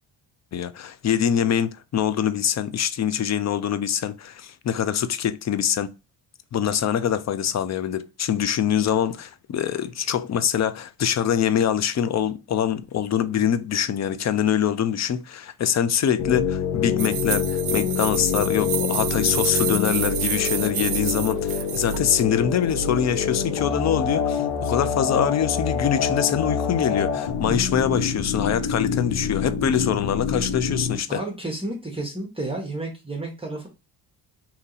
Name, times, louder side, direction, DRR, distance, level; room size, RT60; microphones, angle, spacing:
voice 1, 0.5-5.9 6.5-31.2, left 9 dB, 40° left, 0.4 m, -24 dB
sound 1, 16.2-31.0, left 6 dB, 85° left, 1.0 m, -26 dB
sound 2, 17.0-22.0, right 11 dB, 60° right, 0.6 m, -29 dB
voice 2, 31.1-33.7, right 2 dB, 10° right, 1.0 m, -31 dB
2.9 x 2.6 x 3.8 m
cardioid pair, 75°, 47 cm